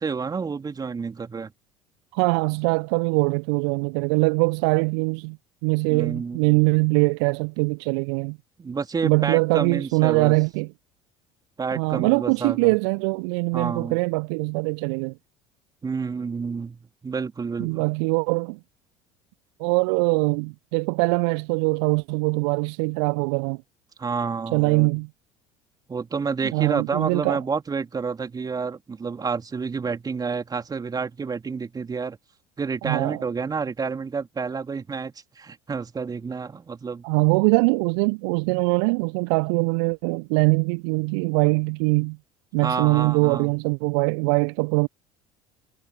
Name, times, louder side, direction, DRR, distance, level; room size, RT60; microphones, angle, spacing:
voice 1, 0.0-1.5 5.9-6.6 8.6-10.3 11.6-12.7 13.5-14.0 15.8-17.8 24.0-24.9 25.9-32.2 32.6-37.0 42.6-43.5, right 5 dB, 25° right, 3.8 m, -29 dB
voice 2, 2.1-5.4 5.6-8.4 9.0-10.7 11.7-15.2 17.6-18.6 19.6-23.6 24.5-25.1 26.5-27.4 32.8-33.2 37.0-42.2 42.5-44.9, right 35 dB, 60° right, 0.9 m, -22 dB
figure-of-eight pair, 60°, 15 cm